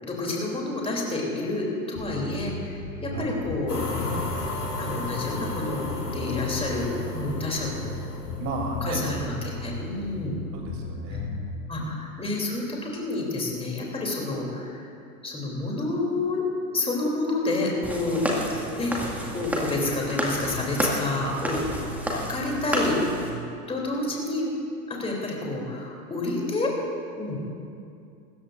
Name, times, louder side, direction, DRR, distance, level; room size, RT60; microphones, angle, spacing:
voice 1, 0.0-4.2 4.8-7.9 8.8-9.3 9.6-10.3 11.1-11.2 11.7-14.9 15.2-16.4 16.7-18.9 19.3-23.0 23.7-24.5 24.9-26.7 27.1-27.4, left 2 dB, 10° left, -2 dB, 3.2 m, -29 dB
Bass guitar, 1.9-3.2 3.4-5.6 5.8-8.0 8.2-10.4 10.6-11.5, left 3 dB, 35° left, 3.5 m, -35 dB
sound 1, 3.7-9.9, left 3 dB, 85° left, 1.7 m, -35 dB
voice 2, 8.4-9.1 10.5-11.4 11.8-11.9, right 2 dB, 35° right, 0 dB, 3.2 m, -33 dB
sound 2, 17.8-23.3, equal, 5° right, 2.0 m, -30 dB
25.0 x 13.5 x 2.6 m, 2.5 s
figure-of-eight pair, 90°, 45 cm